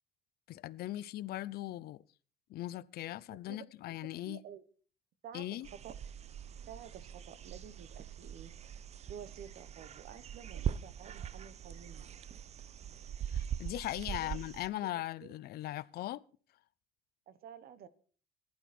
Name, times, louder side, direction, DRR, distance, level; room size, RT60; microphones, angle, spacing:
voice 1, 0.5-2.0 2.5-4.4 5.3-5.7 13.3-16.2, left 15 dB, 65° left, 0.6 m, -39 dB
voice 2, 3.3-4.0 4.2-4.6 5.2-5.9 6.7-8.5 9.1-12.1 14.0-14.4 14.8-14.9 15.2-15.3 17.3-17.9, right 8 dB, 65° right, 1.2 m, -51 dB
sound 1, 5.6-14.7, right 9 dB, 40° right, 0.6 m, -42 dB
15.0 x 11.5 x 4.3 m
cardioid pair, 110°, 17 cm